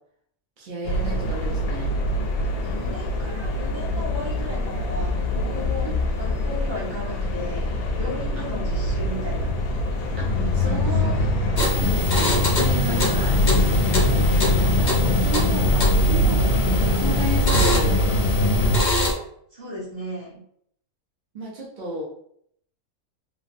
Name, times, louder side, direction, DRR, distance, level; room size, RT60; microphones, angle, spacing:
voice 1, 0.6-2.0 8.4-8.5 10.2-11.2 11.6-13.4 14.6-18.1 21.3-22.0, right 3 dB, 45° right, -4 dB, 0.7 m, -33 dB
sound 1, 0.9-18.8, left 1 dB, 90° left, 1.1 m, -23 dB
voice 2, 2.6-5.9 6.2-7.7 8.0-9.5 10.3-11.3 12.9-13.3 19.5-20.4, left 1 dB, 25° right, -9 dB, 1.3 m, -35 dB
sound 2, 11.6-19.1, left 2 dB, 50° left, 0.5 m, -26 dB
3.2 x 2.3 x 2.5 m, 0.68 s
omnidirectional pair, 1.5 m